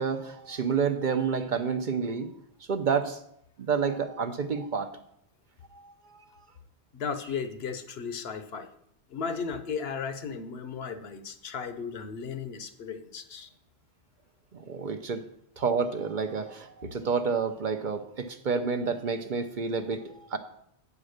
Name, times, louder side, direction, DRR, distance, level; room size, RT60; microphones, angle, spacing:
voice 1, 0.0-2.3 2.7-3.2 3.6-5.0 5.7-5.8 6.1-6.2 14.5-15.2 15.6-20.4, right 5 dB, 50° right, 7 dB, 0.7 m, -29 dB
voice 2, 6.9-8.7 9.1-13.5, left 6 dB, 65° left, 10 dB, 1.0 m, -35 dB
8.6 x 4.9 x 6.5 m, 0.73 s
omnidirectional pair, 1.1 m